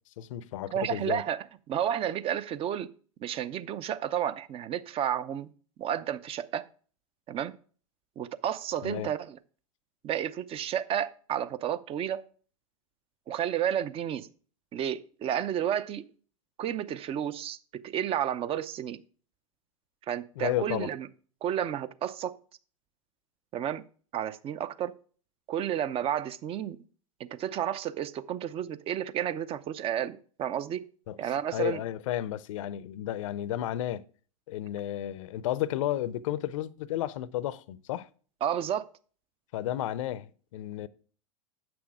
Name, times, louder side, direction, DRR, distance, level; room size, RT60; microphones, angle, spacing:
voice 1, 0.2-1.2 8.8-9.1 20.4-20.9 31.1-31.2 31.5-34.0 34.5-38.1 39.5-40.9, left 12 dB, 65° left, 0.6 m, -32 dB
voice 2, 0.7-2.9 3.2-5.5 5.8-6.6 7.3-7.5 8.2-9.4 10.0-12.2 13.3-14.3 14.7-16.0 16.6-19.0 20.1-21.1 21.4-22.4 23.5-23.8 24.1-24.9 25.5-26.8 27.2-30.8 31.2-31.8 38.4-38.9, right 10 dB, 30° right, 0.6 m, -31 dB
8.1 x 6.2 x 4.7 m
hypercardioid pair, 100°, 18 cm